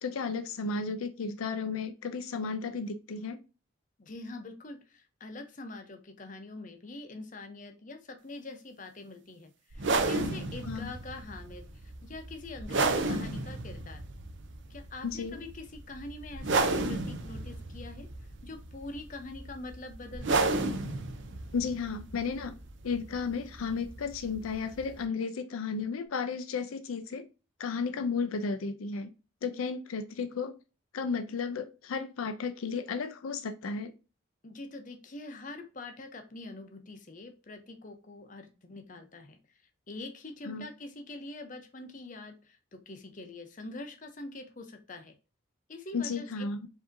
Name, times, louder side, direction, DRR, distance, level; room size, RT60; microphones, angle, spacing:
voice 1, 0.0-3.4 10.6-10.9 15.0-15.4 21.5-22.5 22.8-27.2 27.6-29.1 29.4-30.5 30.9-33.9 40.5-40.7 45.9-46.6, left 5 dB, 85° left, 0.5 m, -33 dB
voice 2, 4.0-14.0 14.7-20.4 34.4-39.4 39.9-45.1 45.7-46.5, left 2 dB, 40° left, 0.7 m, -44 dB
sound 1, 9.7-25.0, right 3 dB, 60° right, 0.5 m, -33 dB
4.9 x 2.7 x 2.6 m
head